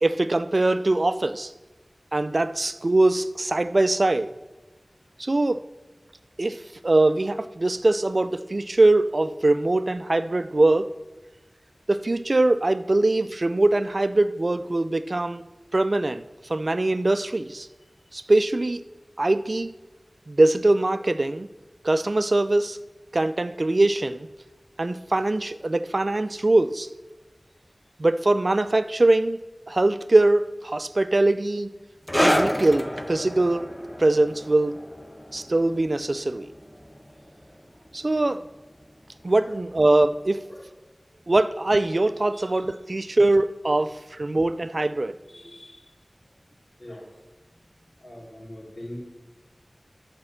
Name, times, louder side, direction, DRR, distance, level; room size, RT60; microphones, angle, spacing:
voice 1, 0.0-1.5 2.1-4.3 5.2-5.6 6.4-10.9 11.9-15.4 15.7-16.2 16.5-17.7 18.1-18.8 19.2-19.7 20.3-21.5 21.8-22.8 23.1-24.3 24.8-26.9 28.0-29.4 29.7-31.7 32.2-33.7 34.0-34.8 35.3-36.5 37.9-38.4 39.2-40.5 41.3-45.2, right 2 dB, 55° right, 0.4 m, -22 dB
sound 1, 32.1-39.1 39.3-39.6 40.3-40.4, equal, 10° left, 0.5 m, -30 dB
voice 2, 42.3-42.6 45.3-45.8 46.8-47.1 48.0-49.0, left 1 dB, 50° left, 3.4 m, -42 dB
11.0 x 5.2 x 7.4 m
wide cardioid pair, 55°, 0 cm